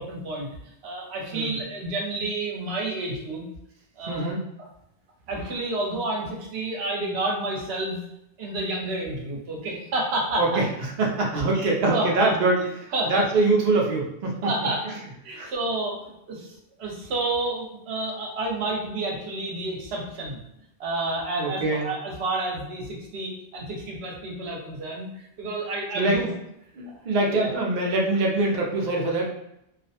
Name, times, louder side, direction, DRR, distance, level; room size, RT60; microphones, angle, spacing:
voice 1, 0.0-3.5 4.0-4.3 5.3-8.0 8.4-10.6 11.5-12.6 12.9-13.3 14.4-14.8 15.2-20.4 20.8-26.3 26.9-27.5, right 2 dB, 75° right, -1 dB, 0.9 m, -30 dB
voice 2, 4.1-4.4 10.4-10.6 11.0-12.6 13.1-14.5 15.3-15.5 21.4-21.9 25.9-26.2 26.8-29.3, right 2 dB, 55° right, -1 dB, 0.6 m, -23 dB
2.4 x 2.1 x 2.7 m, 0.80 s
omnidirectional pair, 1.1 m